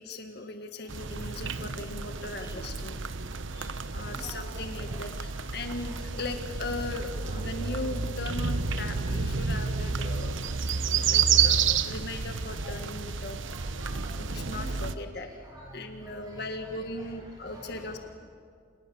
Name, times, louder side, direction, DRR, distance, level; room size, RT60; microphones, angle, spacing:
voice 1, 0.0-3.0 3.5-10.6 11.1-13.4 14.2-15.3 15.7-18.0, left 2 dB, 50° left, 6 dB, 1.7 m, -38 dB
sound 1, 0.9-15.0, right 6 dB, 65° right, 1.0 m, -30 dB
voice 2, 4.1-4.5 4.8-4.9 5.3-6.0 7.2-7.4 10.3-11.2 12.6-12.9 13.2-17.1 17.4-18.0, equal, 20° right, -2 dB, 7.4 m, -49 dB
29.5 x 29.0 x 7.1 m, 2.2 s
head